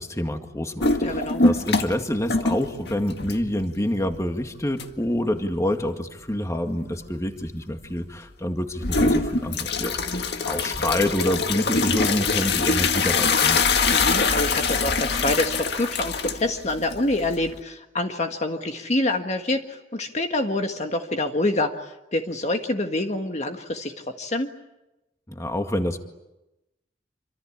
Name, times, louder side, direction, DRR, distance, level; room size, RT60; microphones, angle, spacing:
voice 1, 0.0-13.6 25.3-26.0, left 1 dB, 20° left, 6 dB, 2.0 m, -27 dB
sound 1, 0.8-2.0 2.3-3.6 4.1-4.2 4.8-4.9 8.8-17.6, left 4 dB, 65° left, 1.9 m, -23 dB
voice 2, 1.0-1.4 13.9-23.9 24.2-24.5, left 2 dB, 40° left, 5 dB, 1.7 m, -26 dB
27.0 x 25.5 x 8.6 m, 0.97 s
head